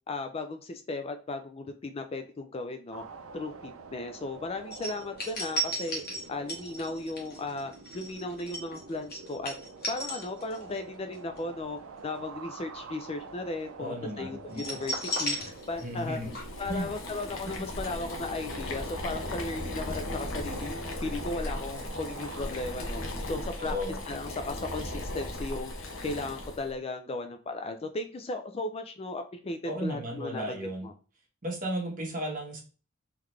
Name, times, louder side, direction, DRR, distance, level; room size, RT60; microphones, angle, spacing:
voice 1, 0.1-3.0 3.3-6.0 6.3-9.5 9.9-15.4 15.7-16.2 16.6-23.8 24.1-25.7 26.0-30.9, left 2 dB, 30° left, 7 dB, 0.4 m, -36 dB
sound 1, 2.9-22.5, right 4 dB, 80° right, 0.5 m, -47 dB
sound 2, 4.7-10.8 11.1-11.4 14.5-16.1 16.3-16.4, right 1 dB, 50° left, 1.4 m, -35 dB
voice 2, 13.8-14.6 15.8-16.3 16.7-16.9 17.5-17.6 23.6-24.0 29.6-30.9 31.4-32.6, equal, 40° right, 0 dB, 1.3 m, -34 dB
Boiling, 15.4-26.7, left 1 dB, 65° left, 0.9 m, -37 dB
3.9 x 3.0 x 3.2 m, 0.36 s
head